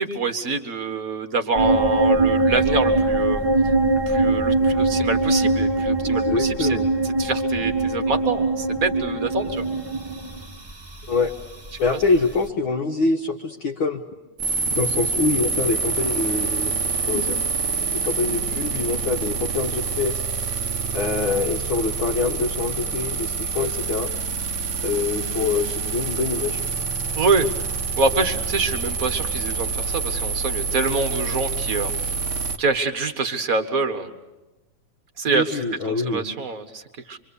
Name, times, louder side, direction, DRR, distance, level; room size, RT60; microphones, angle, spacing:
voice 1, 0.0-3.4 4.1-6.8 7.0-9.7 27.2-27.5 28.0-31.9 32.6-34.1 35.2-35.6 36.0-37.2, right 3 dB, 45° right, 9 dB, 1.2 m, -25 dB
sound 1, 1.5-12.5, right 2 dB, 25° right, 0.5 m, -22 dB
voice 2, 6.0-6.9 11.1-11.3 11.8-14.0 14.7-16.7 17.1-17.4 17.9-20.2 20.9-24.1 24.8-26.6 35.3-36.2, left 4 dB, 55° left, 2 dB, 1.5 m, -25 dB
sound 2, 14.4-32.6, right 5 dB, 75° right, 0.9 m, -26 dB
26.0 x 25.0 x 8.4 m, 1.1 s
omnidirectional pair, 3.7 m